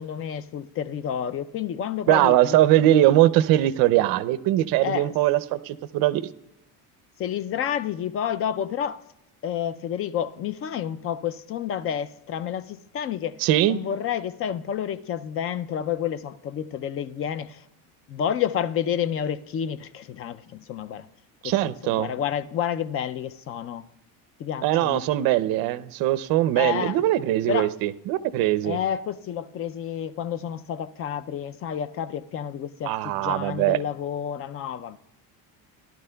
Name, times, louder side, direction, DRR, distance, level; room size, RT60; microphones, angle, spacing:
voice 1, 0.0-3.1 4.8-5.1 7.2-9.0 9.4-13.4 13.7-17.6 18.1-21.1 21.4-23.9 24.4-25.0 26.6-27.0 27.5-27.7 28.6-35.0, left 9 dB, 35° left, 0.4 m, -30 dB
voice 2, 2.1-6.2 13.4-13.8 21.4-22.1 24.6-28.8 32.9-33.8, right 14 dB, 60° right, 0.6 m, -21 dB
17.0 x 11.5 x 2.2 m
cardioid pair, 135°, 41 cm